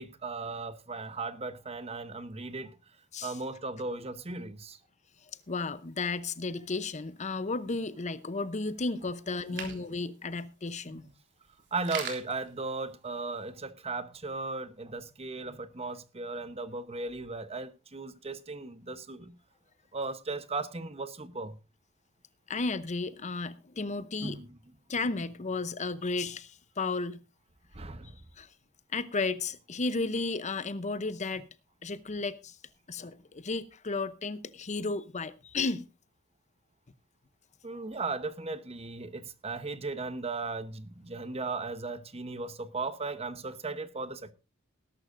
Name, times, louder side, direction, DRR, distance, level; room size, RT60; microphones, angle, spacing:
voice 1, 0.0-2.8 3.2-4.8 9.5-9.6 10.9-11.1 11.7-19.4 19.9-21.6 24.2-24.6 27.7-28.2 37.6-44.3, right 3 dB, 30° right, 0.9 m, -37 dB
sound 1, 5.3-13.5, right 6 dB, 60° right, 3.5 m, -47 dB
voice 2, 5.5-11.0 22.5-24.4 24.9-27.2 28.4-28.5 28.9-31.5 31.8-32.6 32.9-35.9, left 3 dB, 35° left, 0.7 m, -33 dB
19.5 x 11.5 x 2.6 m
head